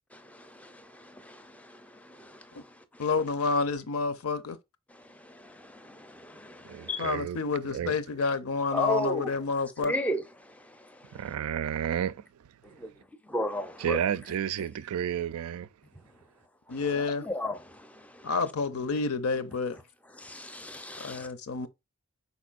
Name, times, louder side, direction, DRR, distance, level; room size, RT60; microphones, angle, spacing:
voice 1, 0.1-3.0 4.9-7.1 8.7-9.3 9.8-11.3 12.6-12.9 13.2-14.0 14.6-14.7 16.7-18.3 20.1-21.3, left 1 dB, 5° left, 0.4 m, -36 dB
voice 2, 3.0-4.6 7.0-9.9 16.7-17.3 18.2-19.8 21.0-21.7, left 4 dB, 80° left, 0.6 m, -29 dB
voice 3, 6.7-7.4 7.7-7.9 11.1-12.1 13.8-15.7, right 9 dB, 85° right, 0.3 m, -31 dB
4.9 x 4.2 x 2.4 m
head